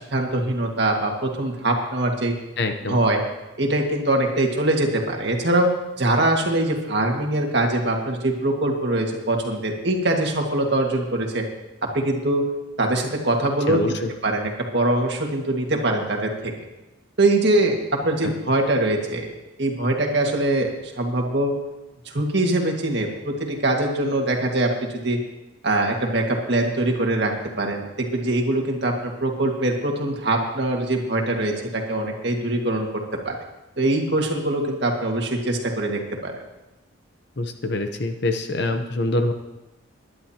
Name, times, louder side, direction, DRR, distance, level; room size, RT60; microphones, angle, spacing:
voice 1, 0.0-2.3 2.9-3.2 3.6-5.7 6.0-11.5 11.8-12.5 12.8-13.8 14.2-16.5 17.2-19.3 19.6-21.5 22.1-25.2 25.6-33.4 33.8-36.3, right 1 dB, 55° right, 1 dB, 1.9 m, -23 dB
voice 2, 2.6-3.0 13.7-14.1 18.2-18.3 37.4-39.3, left 2 dB, 55° left, 6 dB, 0.8 m, -25 dB
22.0 x 11.0 x 2.9 m, 1.0 s
head